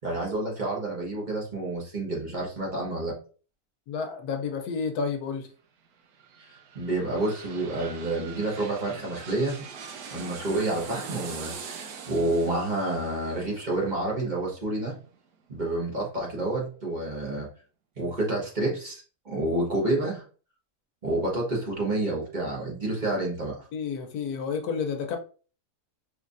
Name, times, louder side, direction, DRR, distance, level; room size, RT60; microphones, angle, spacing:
voice 1, 0.0-3.1 6.5-9.6 10.1-14.9 15.5-17.5 18.0-20.2 21.0-23.6, right 2 dB, 35° right, -3 dB, 1.3 m, -29 dB
voice 2, 3.9-5.5 23.7-25.2, left 5 dB, 80° left, 6 dB, 1.2 m, -30 dB
sound 1, 5.9-15.6 16.0-16.1, right 6 dB, 80° right, 1.2 m, -43 dB
4.6 x 3.3 x 2.5 m, 0.38 s
omnidirectional pair, 1.6 m